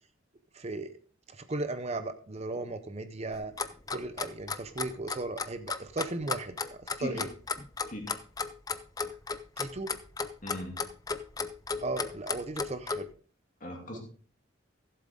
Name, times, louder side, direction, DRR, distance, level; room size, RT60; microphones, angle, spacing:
voice 1, 0.5-1.0 1.3-3.5 3.9-7.3 9.6-9.9 11.8-13.1 13.9-14.0, right 2 dB, 30° right, 10 dB, 0.6 m, -36 dB
Clock, 3.3-13.0, left 4 dB, 20° left, 0.5 m, -33 dB
voice 2, 10.4-10.8 13.6-14.0, left 1 dB, 40° left, 1 dB, 2.8 m, -39 dB
15.5 x 7.6 x 3.7 m, 0.41 s
head